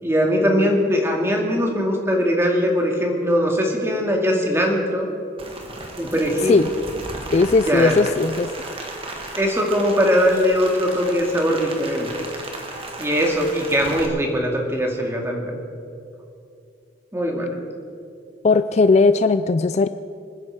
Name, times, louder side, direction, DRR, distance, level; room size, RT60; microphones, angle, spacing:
voice 1, 0.0-5.1 6.0-6.6 7.7-7.9 9.4-12.3 13.0-15.6 17.1-17.6, equal, 15° right, 0 dB, 2.2 m, -21 dB
Rain, 5.4-14.1, right 2 dB, 30° right, 1.8 m, -35 dB
voice 2, 7.3-8.5 18.4-19.9, left 3 dB, 35° left, 12 dB, 0.3 m, -17 dB
27.0 x 9.8 x 4.7 m, 2.5 s
head